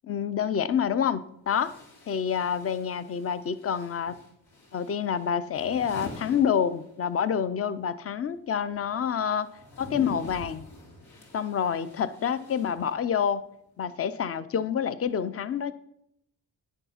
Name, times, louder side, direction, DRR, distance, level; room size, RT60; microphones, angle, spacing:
voice 1, 0.0-1.7 2.1-4.2 4.7-9.5 9.8-10.7 11.3-13.4 13.8-15.7, left 7 dB, 35° left, 15 dB, 0.5 m, -27 dB
sound 1, 0.5-0.6 1.5-7.3 7.5-13.4, left 2 dB, 55° left, 2.5 m, -46 dB
9.9 x 6.8 x 5.7 m, 0.75 s
wide cardioid pair, 160°, 43 cm